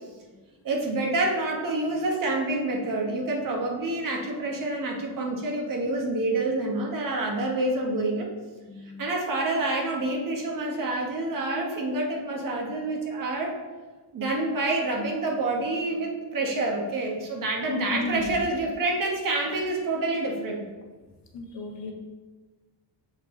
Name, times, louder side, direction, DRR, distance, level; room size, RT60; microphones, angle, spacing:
voice 1, 0.6-8.3 9.0-13.5 14.1-20.6, right 2 dB, 45° right, 0 dB, 1.4 m, -27 dB
voice 2, 8.7-9.1 17.7-18.5 21.3-21.9, left 2 dB, 70° left, 0 dB, 1.3 m, -34 dB
7.7 x 4.8 x 3.8 m, 1.3 s
cardioid pair, 145°, 45 cm